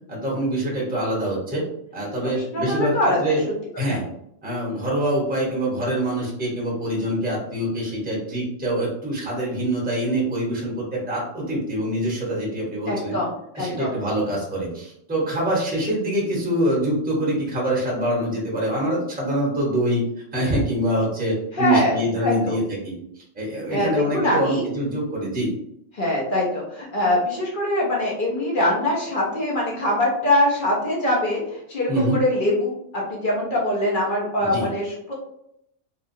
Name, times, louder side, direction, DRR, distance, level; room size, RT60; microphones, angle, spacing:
voice 1, 0.1-1.6 1.9-3.4 3.8-4.1 4.4-13.2 13.5-20.0 20.3-22.9 23.3-25.5 31.9-32.2 34.4-34.7, right 1 dB, 10° right, -5 dB, 0.8 m, -25 dB
voice 2, 2.2-3.5 3.9-4.0 4.7-4.8 12.9-13.9 21.5-22.6 23.7-24.7 25.9-35.1, left 1 dB, 50° left, -3 dB, 0.8 m, -23 dB
2.8 x 2.2 x 2.6 m, 0.75 s
omnidirectional pair, 1.3 m